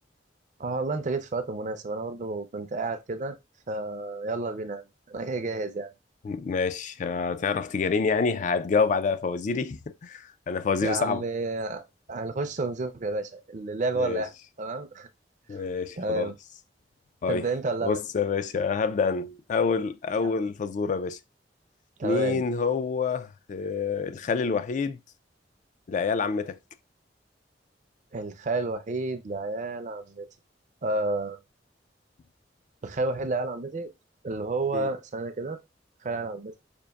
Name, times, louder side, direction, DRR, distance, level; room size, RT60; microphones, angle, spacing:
voice 1, 0.6-3.3 3.7-5.9 10.8-11.8 12.1-14.3 14.6-15.1 15.5-15.6 16.0-16.3 17.3-18.0 20.2-20.3 22.0-22.4 28.1-30.3 30.8-31.4 32.8-33.9 34.2-35.6 36.0-36.6, right 2 dB, 45° right, 0.5 m, -30 dB
voice 2, 6.2-11.2 14.0-14.2 15.5-16.3 17.2-17.5 17.8-21.2 22.0-25.0 25.9-26.6 34.7-34.9, left 5 dB, 45° left, 0.3 m, -27 dB
5.1 x 2.5 x 2.3 m
head